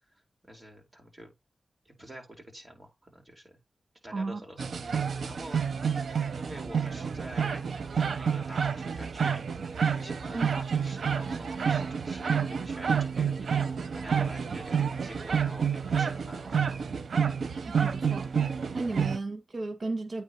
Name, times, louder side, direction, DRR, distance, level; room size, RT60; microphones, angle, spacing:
voice 1, 0.5-1.3 1.8-3.5 4.0-5.6 6.3-7.6 8.0-9.6 10.0-13.6 13.9-16.8, right 1 dB, 25° right, 4.6 m, -46 dB
voice 2, 4.1-4.4 10.3-10.5 17.7-18.3 18.7-20.2, right 3 dB, 55° right, 1.8 m, -33 dB
sound 1, 4.6-19.2, right 6 dB, 80° right, 0.8 m, -29 dB
8.8 x 3.5 x 6.0 m
wide cardioid pair, 85°, 0 cm